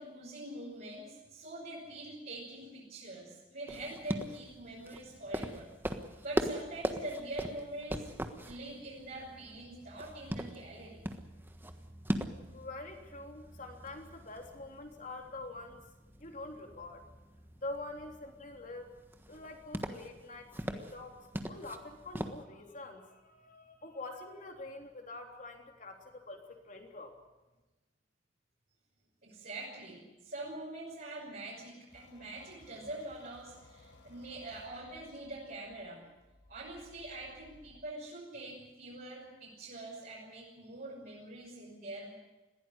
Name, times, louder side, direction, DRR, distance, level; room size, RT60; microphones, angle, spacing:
voice 1, 0.0-5.7 6.2-8.1 8.4-11.0 29.2-36.0 36.5-42.1, right 1 dB, 50° right, -6 dB, 6.1 m, -44 dB
sound 1, 3.7-22.4, equal, 10° right, 1.4 m, -41 dB
voice 2, 12.5-15.8 16.2-17.0 17.6-18.9 19.3-21.2 21.5-27.1, left 2 dB, 40° left, 3 dB, 3.4 m, -45 dB
sound 2, 31.9-37.8, left 1 dB, 65° left, 5.6 m, -60 dB
21.5 x 16.0 x 9.9 m, 1.1 s
head